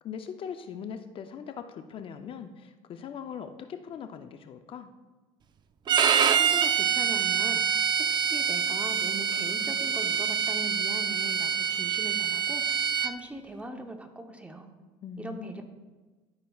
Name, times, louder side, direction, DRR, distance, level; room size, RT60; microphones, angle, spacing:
voice 1, 0.0-4.9 15.0-15.5, left 7 dB, 45° left, 8 dB, 0.5 m, -40 dB
Bowed string instrument, 5.9-13.1, right 8 dB, 35° right, 0.4 m, -26 dB
voice 2, 6.0-14.7 15.2-15.6, right 2 dB, 10° right, 5 dB, 0.8 m, -40 dB
12.5 x 5.6 x 2.3 m, 1.3 s
supercardioid pair, 100°, 13 cm